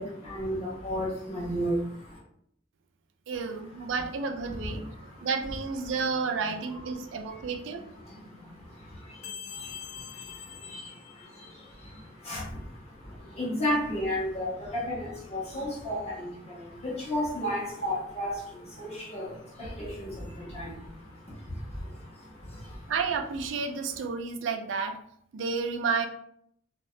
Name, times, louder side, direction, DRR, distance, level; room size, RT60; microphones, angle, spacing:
voice 1, 0.0-2.2 3.9-4.1 4.5-5.3 5.8-5.9 6.4-22.9, equal, 35° left, -8 dB, 1.2 m, -35 dB
voice 2, 3.3-4.8 5.2-7.8 22.9-25.0 25.3-26.1, right 5 dB, 70° right, 5 dB, 0.4 m, -31 dB
sound 1, 9.2-11.8, left 8 dB, 80° left, 0.3 m, -43 dB
2.7 x 2.3 x 3.1 m, 0.68 s
head